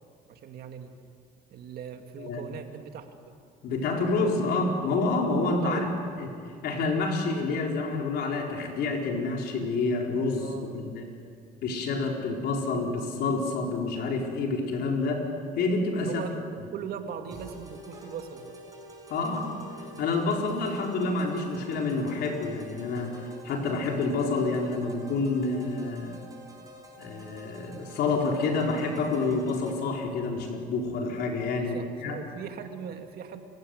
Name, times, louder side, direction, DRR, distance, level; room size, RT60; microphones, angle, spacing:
voice 1, 0.3-0.9 1.5-3.1 5.6-6.0 10.4-10.9 16.0-16.4 16.7-18.6 31.5-33.4, right 7 dB, 65° right, 6 dB, 2.2 m, -40 dB
voice 2, 3.6-6.3 6.6-11.1 11.6-15.3 15.5-16.2 19.1-19.6 20.0-26.2 27.0-31.7 32.0-32.2, left 3 dB, 75° left, 1 dB, 4.4 m, -28 dB
sound 1, 17.3-29.7, equal, 20° right, 5.5 m, -48 dB
30.0 x 16.0 x 7.9 m, 2.3 s
cardioid pair, 110°, 17 cm